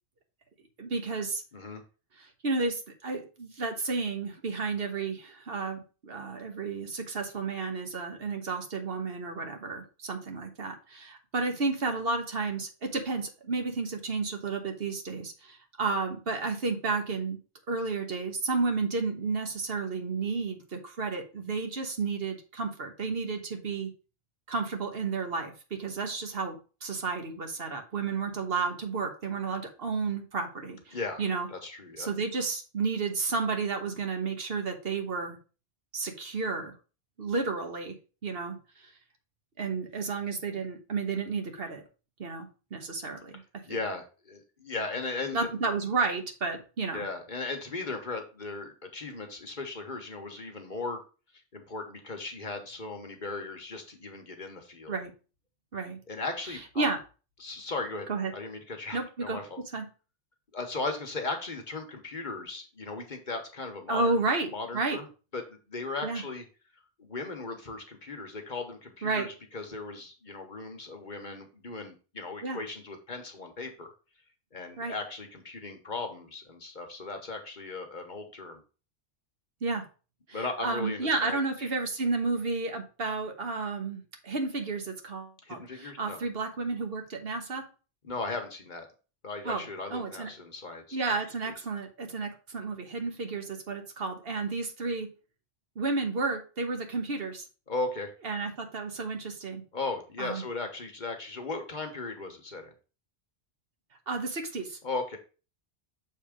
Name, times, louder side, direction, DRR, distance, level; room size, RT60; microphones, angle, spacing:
voice 1, 0.8-1.4 2.2-17.4 17.7-23.9 24.5-25.5 25.8-31.5 32.0-35.4 35.9-36.7 37.2-38.0 38.2-38.6 39.6-41.8 42.2-43.3 45.3-47.0 54.9-55.1 55.7-56.0 56.8-57.0 58.1-58.3 58.9-59.4 59.7-59.9 63.9-64.5 64.7-65.0 66.0-66.2 69.0-69.3 72.4-72.6 74.8-74.9 79.6-79.8 80.3-87.6 89.4-89.6 89.9-90.3 90.9-95.1 95.7-97.4 98.2-99.6 100.2-100.4 104.1-104.8, right 4 dB, 70° right, 4 dB, 1.4 m, -32 dB
voice 2, 1.5-1.8 30.9-31.2 31.5-32.1 43.7-45.5 46.9-51.0 51.5-55.0 56.1-56.9 57.4-58.1 58.3-59.6 60.5-64.2 64.5-65.1 65.3-66.4 67.0-73.9 74.5-78.6 80.3-81.7 85.4-86.2 88.0-88.9 89.2-91.0 97.7-98.1 99.7-102.7 104.8-105.2, left 3 dB, 50° left, 4 dB, 1.2 m, -37 dB
6.7 x 3.6 x 5.0 m, 0.34 s
omnidirectional pair, 1.0 m